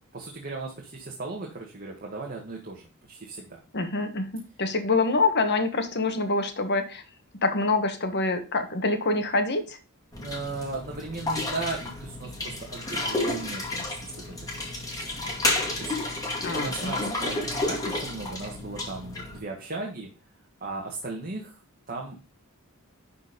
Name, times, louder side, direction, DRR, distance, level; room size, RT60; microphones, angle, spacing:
voice 1, 0.1-3.6 10.2-15.0 15.2-15.3 15.7-15.9 16.6-20.1 20.6-21.6 21.9-22.4, right 3 dB, 40° right, 0 dB, 1.8 m, -37 dB
voice 2, 3.7-7.0 7.4-9.8 16.4-17.1, left 3 dB, 50° left, 7 dB, 1.5 m, -26 dB
sound 1, 10.1-19.4, left 2 dB, 15° left, 2.3 m, -31 dB
11.0 x 4.5 x 5.3 m, 0.33 s
head